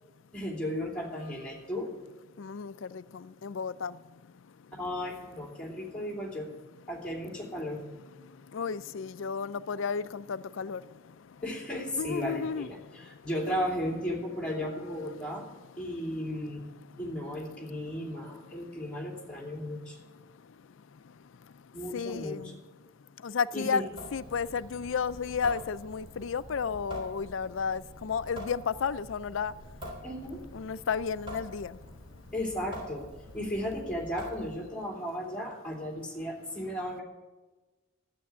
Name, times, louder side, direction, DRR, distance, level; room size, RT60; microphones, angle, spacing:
voice 1, 0.3-1.9 4.7-6.5 6.9-7.8 11.4-15.4 15.8-16.6 17.0-20.0 21.7-22.5 23.5-23.9 30.0-30.4 32.3-33.1 33.3-37.0, equal, 5° left, 2.9 m, -35 dB
voice 2, 2.4-4.0 8.5-10.8 12.0-12.7 15.0-15.1 21.9-22.5 23.2-29.5 30.5-31.8, left 6 dB, 65° left, 0.4 m, -32 dB
Water tap faucet / Sink (filling or washing) / Drip, 23.9-34.8, left 1 dB, 25° right, 3.5 m, -45 dB
12.0 x 8.4 x 8.7 m
head